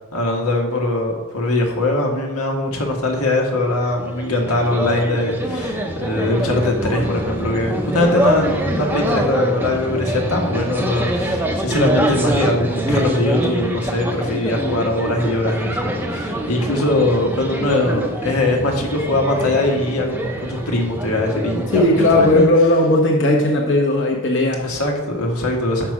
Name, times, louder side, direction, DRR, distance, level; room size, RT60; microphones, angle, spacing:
voice 1, 0.1-22.5 24.6-25.9, left 1 dB, 90° left, 0 dB, 1.5 m, -21 dB
sound 1, 3.7-22.5, equal, 10° right, 0.6 m, -24 dB
voice 2, 21.7-24.6, left 1 dB, 55° left, -1 dB, 1.0 m, -16 dB
6.1 x 6.0 x 4.9 m, 1.1 s
head